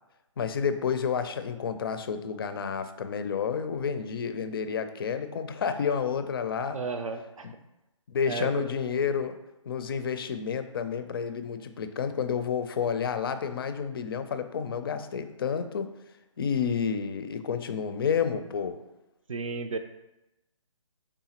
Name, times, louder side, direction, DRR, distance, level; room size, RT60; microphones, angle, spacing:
voice 1, 0.4-6.8 8.1-9.4 9.7-15.9 16.4-18.8, left 6 dB, 45° left, 10 dB, 0.4 m, -30 dB
voice 2, 6.7-7.5 8.3-8.7 19.3-19.8, right 4 dB, 80° right, 7 dB, 0.5 m, -33 dB
4.9 x 3.6 x 2.9 m, 0.96 s
figure-of-eight pair, 145°, 17 cm